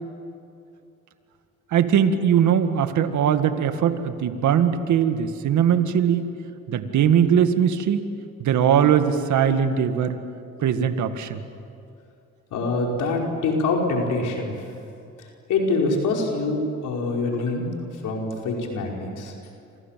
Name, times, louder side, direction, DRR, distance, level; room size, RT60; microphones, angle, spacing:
voice 1, 1.7-6.3 6.7-8.1 8.4-10.2 10.6-11.4, right 8 dB, 75° right, 8 dB, 1.9 m, -20 dB
voice 2, 12.5-14.5 15.5-17.7 18.0-19.3, left 3 dB, 80° left, 0 dB, 5.3 m, -25 dB
29.5 x 26.0 x 7.6 m, 2.5 s
cardioid pair, 90°, 30 cm